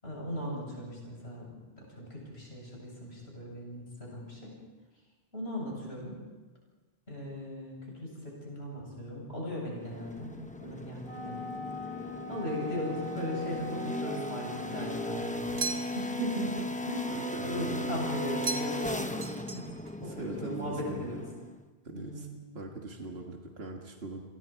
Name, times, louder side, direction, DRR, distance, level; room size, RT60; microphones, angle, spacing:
voice 1, 0.0-4.5 5.3-6.2 7.1-11.4 11.7-15.7 15.9-16.6 16.9-21.3 21.9-22.4, left 1 dB, 75° left, -2 dB, 8.4 m, -38 dB
sound 1, 9.8-21.6, left 1 dB, 10° left, 0.9 m, -37 dB
Wind instrument woodwind instrument, 11.0-15.3, left 2 dB, 20° right, 5.7 m, -41 dB
sound 2, 15.6-16.2 18.4-18.9 19.2-20.0, right 4 dB, 35° right, 1.4 m, -36 dB
voice 2, 17.0-18.0 20.0-21.2 21.8-22.3 22.5-24.2, right 3 dB, 70° right, 1 dB, 2.1 m, -41 dB
29.5 x 23.0 x 4.7 m, 1.3 s
omnidirectional pair, 1.1 m